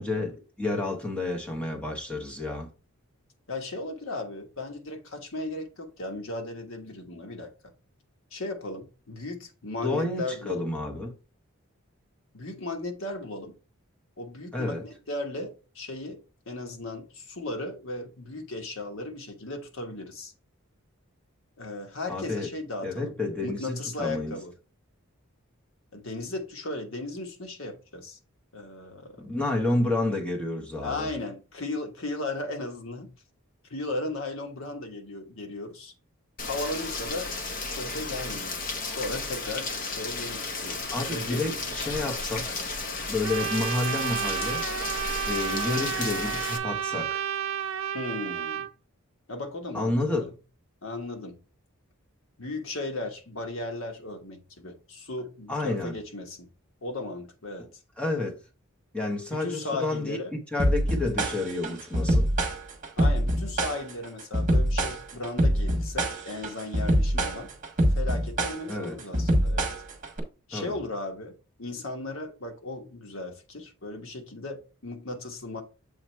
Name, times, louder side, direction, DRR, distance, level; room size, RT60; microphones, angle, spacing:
voice 1, 0.0-2.7 9.8-11.1 14.5-14.8 22.1-22.5 22.8-24.4 29.2-31.1 40.9-42.6 43.1-44.7 45.3-47.2 49.7-50.3 55.5-56.0 58.0-58.4 58.9-60.2 60.5-62.3 68.7-69.0 70.5-70.8, left 2 dB, 5° left, 1.2 m, -30 dB
voice 2, 3.5-7.5 8.3-10.7 12.3-13.6 14.2-16.2 16.5-20.3 21.6-23.1 23.4-24.5 25.9-28.2 28.5-29.4 30.8-33.1 33.7-35.9 36.5-37.3 37.6-38.6 38.9-41.6 47.9-48.7 49.3-50.3 50.8-51.4 52.4-56.5 56.8-57.8 59.3-60.3 63.0-67.5 67.9-69.7 70.5-75.6, left 2 dB, 65° left, 1.3 m, -36 dB
Rain, 36.4-46.6, left 3 dB, 40° left, 0.9 m, -33 dB
Trumpet, 43.2-48.7, right 9 dB, 60° right, 0.5 m, -31 dB
sound 1, 60.6-70.2, equal, 35° right, 1.5 m, -24 dB
7.3 x 3.0 x 4.5 m
head